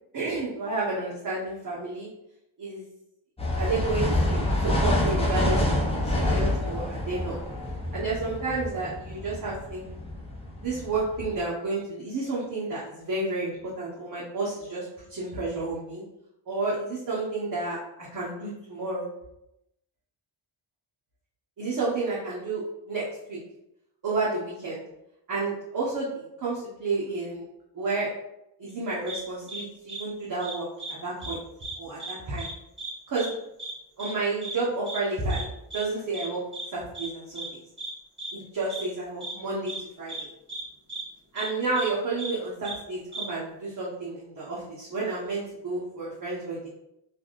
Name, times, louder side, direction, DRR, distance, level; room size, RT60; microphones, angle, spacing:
voice 1, 0.1-2.1 2.6-2.8 3.6-7.4 7.9-9.8 10.6-16.0 16.5-19.1 21.6-23.4 24.0-24.8 25.3-27.4 27.7-28.1 28.6-31.4 31.8-32.5 33.1-33.3 34.0-35.5 35.7-36.4 36.7-37.6 38.3-39.7 40.0-40.3 41.3-46.7, right 3 dB, 45° right, -8 dB, 1.1 m, -31 dB
sound 1, 3.4-11.4, left 1 dB, 15° left, 0.8 m, -27 dB
sound 2, 29.1-29.2 29.5-29.6 29.9-30.0 30.4-30.9 31.2-31.3 31.6-32.1 32.4-32.5 32.8-32.9 33.2-33.3 33.6-33.7 34.0-34.1 34.4-34.5 34.9-35.0 35.3-35.4 35.7-35.8 36.1-36.3 36.5-36.7 36.9-37.1 37.3-37.5 37.8-37.9 38.2-38.3 38.7-38.8 39.2-39.3 39.7-39.8 40.1-40.2 40.5-40.6 40.9-41.0 41.4-41.5 41.8-41.9 42.2-42.3 42.6-42.8 43.1-43.2, right 2 dB, 25° right, 1.4 m, -36 dB
3.3 x 2.5 x 2.4 m, 0.84 s
cardioid pair, 65°, 47 cm